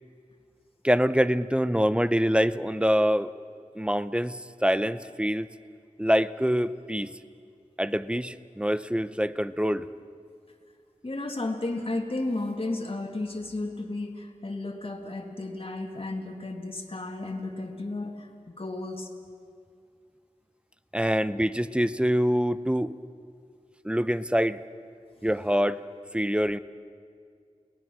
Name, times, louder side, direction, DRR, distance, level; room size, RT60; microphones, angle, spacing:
voice 1, 0.8-3.3 3.8-5.5 6.0-7.1 7.8-9.9 20.9-22.9 23.8-24.6 25.2-25.8 26.1-26.6, equal, 10° right, 14 dB, 0.6 m, -25 dB
voice 2, 11.0-19.1, left 2 dB, 45° left, 2 dB, 2.1 m, -33 dB
29.5 x 18.5 x 6.1 m, 2.2 s
wide cardioid pair, 60°, 13 cm